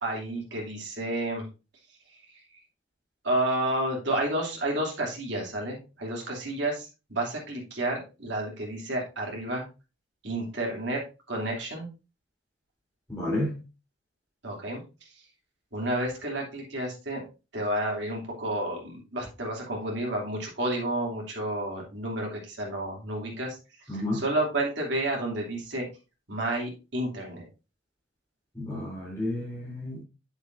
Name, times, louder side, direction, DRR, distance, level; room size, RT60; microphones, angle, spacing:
voice 1, 0.0-1.5 2.1-2.6 3.2-9.7 10.2-11.0 11.3-11.9 14.4-14.8 15.7-17.2 17.5-23.6 23.9-25.9 26.3-27.4, right 1 dB, 60° right, 2.9 m, -31 dB
voice 2, 13.1-13.6 23.9-24.2 28.5-30.0, left 1 dB, 15° left, 3.9 m, -31 dB
8.5 x 7.0 x 2.6 m
head